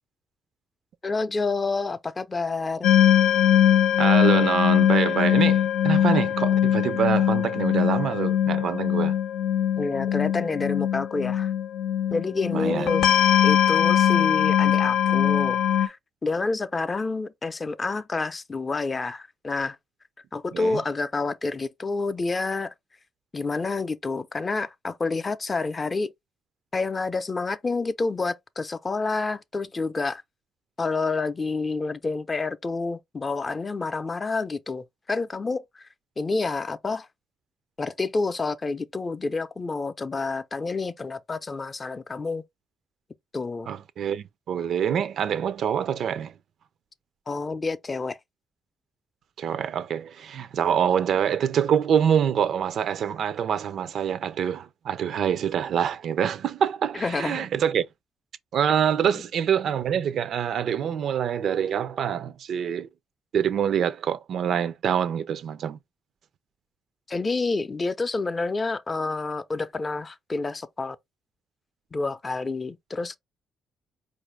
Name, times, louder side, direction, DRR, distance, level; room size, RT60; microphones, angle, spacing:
voice 1, 1.0-2.9 9.8-11.5 12.1-13.1 13.4-19.8 20.3-22.7 23.3-26.1 26.7-30.2 30.8-35.9 36.2-37.1 37.8-42.4 43.3-43.7 47.3-48.2 56.9-57.5 67.1-71.0 71.9-73.2, left 3 dB, 30° left, 0.5 m, -28 dB
sound 1, 2.8-15.9, left 10 dB, 80° left, 0.5 m, -21 dB
voice 2, 4.0-9.2 12.5-12.9 20.5-20.8 43.7-46.3 49.4-57.9 58.5-62.9 63.3-65.8, right 8 dB, 65° right, 0.4 m, -25 dB
4.5 x 2.5 x 3.2 m
cardioid pair, 90°, 0 cm